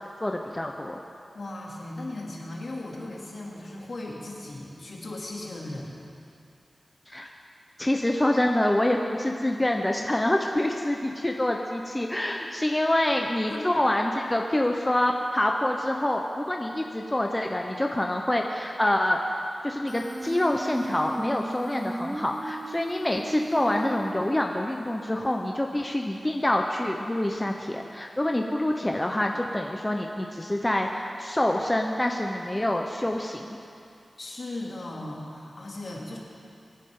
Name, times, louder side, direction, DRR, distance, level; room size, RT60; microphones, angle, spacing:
voice 1, 0.2-1.0 7.1-7.3 7.8-33.6, left 1 dB, 20° left, 2 dB, 0.9 m, -26 dB
voice 2, 1.3-6.0 13.5-13.8 34.2-36.2, left 2 dB, 65° left, -3 dB, 2.9 m, -37 dB
Human voice, 19.9-24.8, right 1 dB, 20° right, 0.7 m, -36 dB
24.5 x 9.8 x 3.9 m, 2.5 s
cardioid pair, 55°, 0 cm